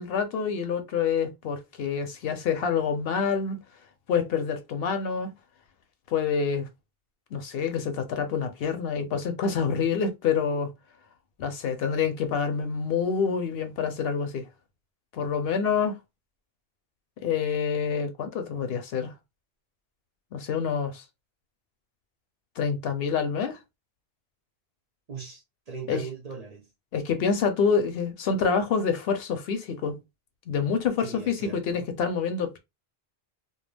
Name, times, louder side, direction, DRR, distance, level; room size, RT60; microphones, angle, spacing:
voice 1, 0.0-3.6 4.1-5.3 6.1-6.7 7.3-10.7 11.4-14.5 15.1-16.0 17.2-19.1 20.3-21.0 22.6-23.6 25.9-26.0 26.9-30.0 30.5-32.6, left 6 dB, 70° left, 0.7 m, -27 dB
voice 2, 25.1-26.7 31.0-31.9, right 5 dB, 45° right, 0.6 m, -39 dB
2.2 x 2.2 x 3.2 m
omnidirectional pair, 1.1 m